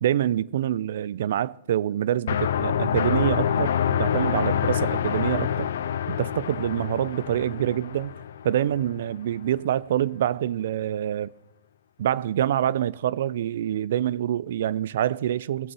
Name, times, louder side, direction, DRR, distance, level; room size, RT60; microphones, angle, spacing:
voice 1, 0.0-5.7 6.1-8.1 8.4-11.3 12.0-15.7, right 11 dB, 65° right, 0.4 m, -26 dB
sound 1, 2.3-9.0, left 8 dB, 70° left, 0.6 m, -26 dB
20.0 x 7.3 x 4.7 m
hypercardioid pair, 125°, 0 cm